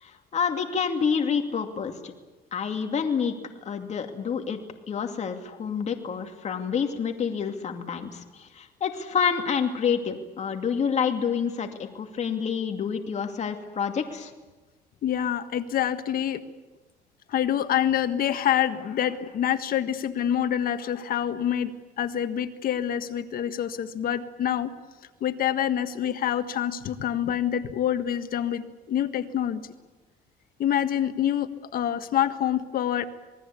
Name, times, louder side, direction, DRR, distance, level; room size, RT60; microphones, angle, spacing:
voice 1, 0.0-2.1 2.5-3.3 3.6-4.6 4.9-14.3, left 6 dB, 40° left, 4 dB, 2.5 m, -28 dB
voice 2, 15.0-16.4 17.3-24.7 25.2-29.6 30.6-33.1, left 10 dB, 60° left, 9 dB, 1.6 m, -26 dB
26.5 x 20.0 x 8.4 m, 1.2 s
cardioid pair, 110°, 17 cm